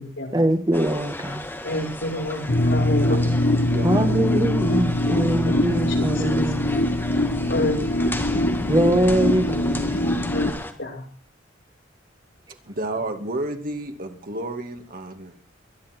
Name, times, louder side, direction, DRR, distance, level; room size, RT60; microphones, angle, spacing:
voice 1, 0.3-1.5 3.8-6.8 8.7-10.3, right 1 dB, 20° right, 7 dB, 1.9 m, -23 dB
sound 1, 0.7-10.7, left 1 dB, 10° left, 1.9 m, -35 dB
voice 2, 1.6-3.3 5.5-5.6 6.0-6.1 7.5-7.8 10.3-10.5 10.8-11.0, left 1 dB, 70° left, 1 dB, 5.9 m, -28 dB
sound 2, 2.5-10.5, left 1 dB, 50° left, 1.9 m, -22 dB
voice 3, 3.7-4.0 5.0-5.3 7.5-7.8 12.7-15.3, right 2 dB, 50° right, 6 dB, 2.5 m, -31 dB
23.5 x 10.5 x 4.6 m, 0.39 s
head